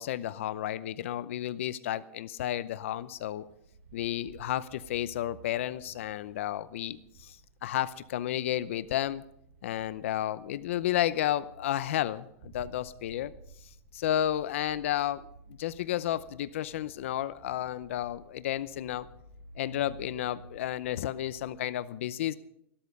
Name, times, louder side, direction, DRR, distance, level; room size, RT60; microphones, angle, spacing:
voice 1, 0.0-3.4 3.9-9.2 9.6-13.3 13.9-15.3 15.6-19.1 19.6-22.3, left 12 dB, 75° left, 15 dB, 0.6 m, -32 dB
sound 1, 3.0-21.6, right 4 dB, 70° right, 1.8 m, -54 dB
14.5 x 13.0 x 5.3 m, 0.72 s
supercardioid pair, 160°, 7 cm